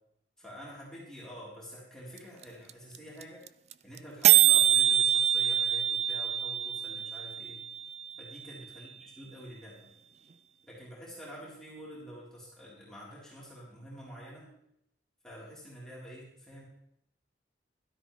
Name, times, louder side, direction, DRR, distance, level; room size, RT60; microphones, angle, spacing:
voice 1, 0.4-3.4 3.8-7.6 8.2-9.9 10.7-14.5 15.2-16.6, equal, 5° left, -7 dB, 4.3 m, -47 dB
sound 1, 2.2-2.3 2.4-2.5 2.7-3.0 3.2-3.3 3.5-3.7 4.0-4.1 4.2-8.2, right 12 dB, 35° right, 0.4 m, -25 dB
16.5 x 13.0 x 3.4 m, 0.77 s
head